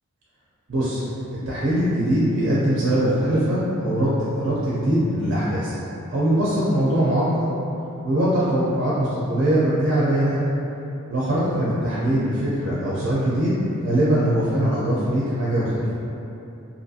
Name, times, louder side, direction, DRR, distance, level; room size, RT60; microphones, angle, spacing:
voice 1, 0.7-1.0 1.5-5.8 6.1-7.5 8.0-10.4 11.1-13.5 13.8-15.9, right 1 dB, 55° right, -8 dB, 0.4 m, -21 dB
2.6 x 2.4 x 2.6 m, 2.8 s
head